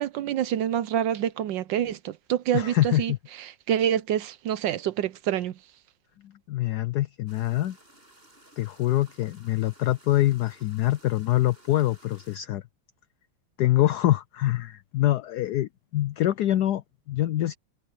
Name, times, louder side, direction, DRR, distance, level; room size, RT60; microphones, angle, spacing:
voice 1, 0.0-3.1 3.4-5.5, right 10 dB, 70° right, 1.2 m, -27 dB
voice 2, 2.5-3.2 6.5-7.8 8.6-12.6 13.6-17.6, left 14 dB, 90° left, 0.8 m, -25 dB
sound 1, 7.3-12.4, right 1 dB, 25° right, 7.5 m, -56 dB
omnidirectional pair, 2.3 m